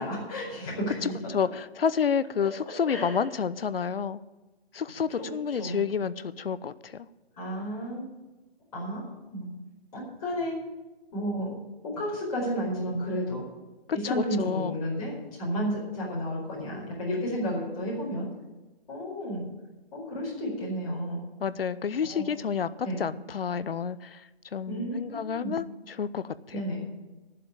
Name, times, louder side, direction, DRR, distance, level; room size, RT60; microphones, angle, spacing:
voice 1, 0.0-1.1 2.4-2.5 2.9-3.3 5.2-5.8 7.4-8.0 8.7-9.0 9.3-9.4 9.9-10.5 11.1-11.5 11.8-13.4 13.9-18.3 18.9-19.4 19.9-21.2 22.0-22.2 22.8-23.0 24.7-25.5 26.5-26.8, equal, 35° left, -5 dB, 4.7 m, -32 dB
voice 2, 1.0-4.2 4.7-7.1 14.0-14.8 21.4-26.6, left 6 dB, 65° left, 16 dB, 0.7 m, -30 dB
11.5 x 7.6 x 8.9 m, 1.1 s
hypercardioid pair, 165°, 31 cm